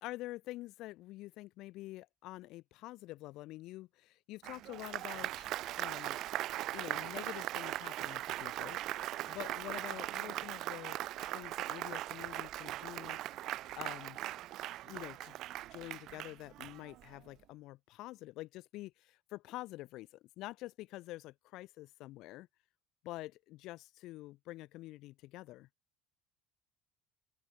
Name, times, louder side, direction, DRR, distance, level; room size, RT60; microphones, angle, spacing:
voice 1, 0.0-6.2 6.7-8.8 9.2-11.0 11.3-13.2 13.8-14.2 14.8-15.4 15.7-22.5 23.0-25.7, left 18 dB, 60° left, 5.1 m, -47 dB
Applause, 4.4-17.2, right 15 dB, 55° right, 3.5 m, -40 dB
open air
cardioid pair, 120°, 0 cm